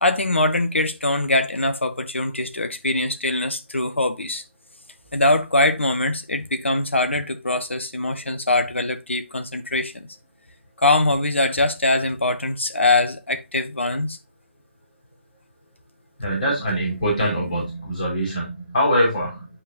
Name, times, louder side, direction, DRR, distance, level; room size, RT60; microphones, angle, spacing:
voice 1, 0.0-4.4 5.1-10.1 10.8-14.2, left 2 dB, 70° left, 1.3 m, -22 dB
voice 2, 16.2-19.5, equal, 40° left, 4.9 m, -23 dB
9.2 x 5.7 x 2.7 m
figure-of-eight pair, 150°, 7 cm